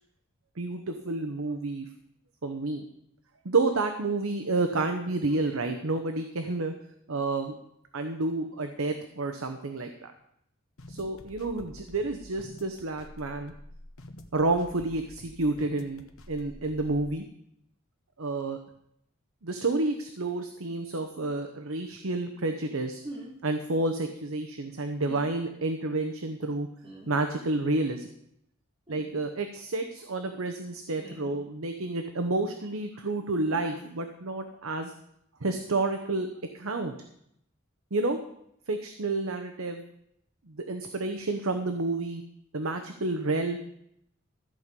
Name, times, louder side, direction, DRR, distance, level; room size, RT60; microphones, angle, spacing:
voice 1, 0.6-1.9 2.4-2.8 3.4-6.7 7.1-7.5 7.9-10.1 10.9-13.5 14.3-17.2 18.2-18.6 19.4-23.0 23.4-26.7 27.1-28.1 28.9-34.9 35.4-36.3 36.5-36.9 37.9-38.2 38.7-39.8 40.4-42.2 42.5-43.6, right 2 dB, 70° right, 6 dB, 0.9 m, -30 dB
sound 1, 10.8-17.1, left 1 dB, 70° left, 1.2 m, -48 dB
sound 2, 23.0-23.3 25.0-25.4 26.8-27.1 28.9-29.1 31.0-31.4 33.5-33.7, right 1 dB, 25° right, 3.1 m, -42 dB
14.0 x 5.3 x 8.2 m, 0.74 s
head